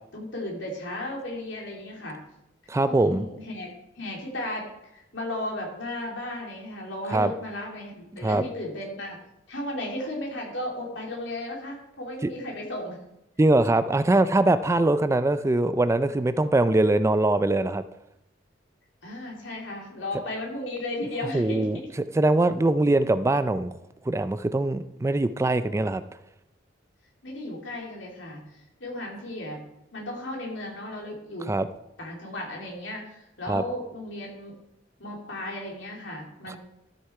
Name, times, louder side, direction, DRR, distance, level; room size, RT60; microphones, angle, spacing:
voice 1, 0.1-2.2 2.8-3.7 3.9-9.2 9.5-13.0 19.0-21.7 27.2-29.7 29.9-31.6 32.0-34.5 35.0-36.6, left 1 dB, 75° left, -1 dB, 3.3 m, -35 dB
voice 2, 2.7-3.2 7.1-7.3 8.2-8.4 13.4-17.8 21.3-21.8 22.1-23.7 24.1-26.0 31.5-31.7 33.5-33.6 36.5-36.6, right 2 dB, 15° right, 12 dB, 0.3 m, -22 dB
13.0 x 6.6 x 4.6 m, 0.86 s
head